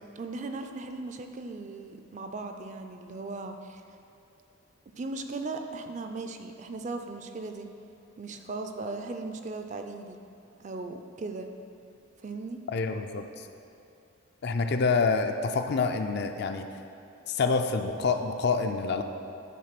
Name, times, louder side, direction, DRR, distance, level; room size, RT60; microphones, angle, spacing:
voice 1, 0.2-3.8 5.0-7.7 8.2-10.2 10.6-11.5 12.2-12.6, right 3 dB, 35° right, 6 dB, 0.4 m, -37 dB
voice 2, 12.7-13.2 14.4-16.6 17.3-19.0, left 4 dB, 50° left, 7 dB, 0.4 m, -27 dB
9.3 x 3.9 x 5.8 m, 2.7 s
head